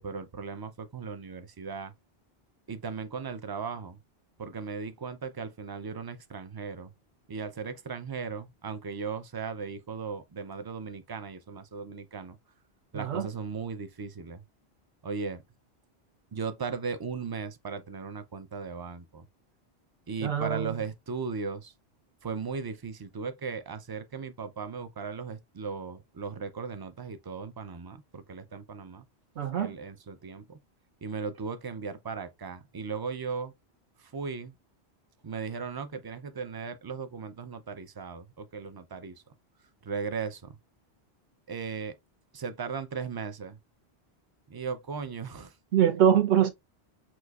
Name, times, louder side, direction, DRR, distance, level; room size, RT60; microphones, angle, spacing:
voice 1, 0.0-1.9 2.7-4.0 4.4-6.9 7.3-12.4 12.9-14.4 15.0-15.4 16.3-19.3 20.1-21.7 22.2-29.0 29.6-30.6 31.0-33.5 34.0-34.5 35.2-39.2 39.8-40.6 41.5-41.9 42.3-43.6 44.5-45.5, right 5 dB, 40° right, 0.3 m, -37 dB
voice 2, 12.9-13.3 20.2-20.8 29.4-29.7 45.7-46.5, right 9 dB, 85° right, 1.1 m, -24 dB
6.1 x 2.8 x 2.4 m
omnidirectional pair, 1.1 m